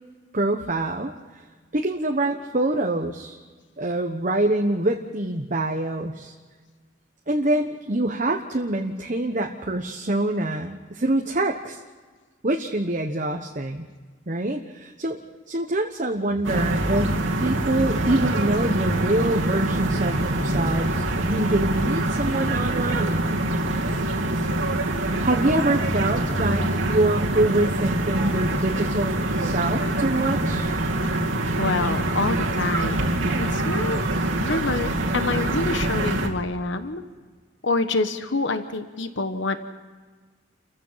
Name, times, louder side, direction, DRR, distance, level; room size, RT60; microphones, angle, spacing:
voice 1, 0.3-1.1 1.7-3.4 3.8-6.3 7.3-11.8 12.4-13.9 14.3-15.2 15.5-23.3 25.0-30.7, right 1 dB, 40° right, 3 dB, 1.1 m, -25 dB
sound 1, 16.4-36.3, right 1 dB, 80° right, 2.6 m, -24 dB
voice 2, 31.6-33.1 33.4-34.0 34.3-37.0 37.6-39.6, left 3 dB, 65° left, 9 dB, 1.2 m, -26 dB
29.5 x 15.5 x 5.7 m, 1.5 s
head